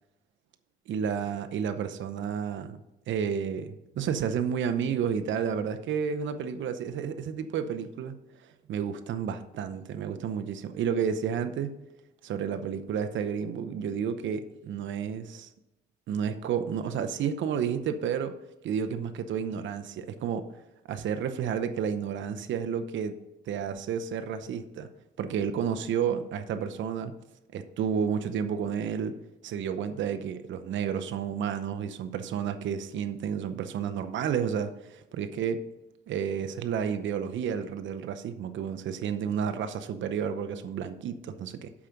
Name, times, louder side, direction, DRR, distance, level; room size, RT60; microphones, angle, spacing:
voice 1, 0.9-2.8 3.1-8.2 8.7-11.8 12.2-15.5 16.1-18.4 18.6-20.5 20.9-23.2 23.5-24.9 25.2-27.1 27.5-29.2 29.4-35.6 36.1-41.7, right 7 dB, 70° right, 9 dB, 0.7 m, -31 dB
8.6 x 5.8 x 5.2 m, 0.98 s
cardioid pair, 90°, 20 cm